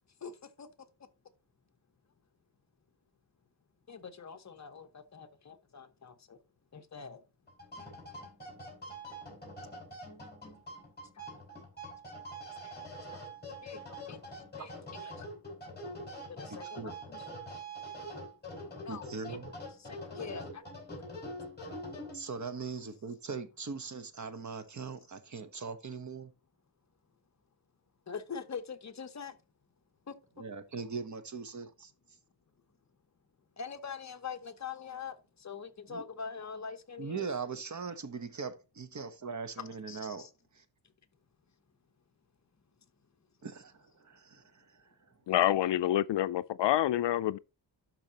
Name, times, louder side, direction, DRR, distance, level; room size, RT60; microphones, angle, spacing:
voice 1, 0.2-0.7 3.9-6.4 6.7-7.2 11.1-11.2 12.6-12.7 13.1-13.2 13.6-14.2 14.6-14.7 15.0-15.3 16.3-17.3 18.8-19.4 19.8-20.6 28.1-29.4 30.1-30.4 33.6-37.3 39.9-40.3, left 6 dB, 40° left, 1.0 m, -44 dB
sound 1, 7.5-22.5, equal, 20° left, 4.9 m, -44 dB
voice 2, 16.5-16.9 18.9-19.5 20.0-20.1 22.1-26.3 30.4-31.9 35.9-36.0 37.0-40.3 40.5-40.6 43.4-44.8, right 5 dB, 40° right, 1.0 m, -40 dB
voice 3, 45.3-47.4, left 12 dB, 75° left, 0.5 m, -27 dB
12.0 x 4.6 x 2.9 m
wide cardioid pair, 130°, 44 cm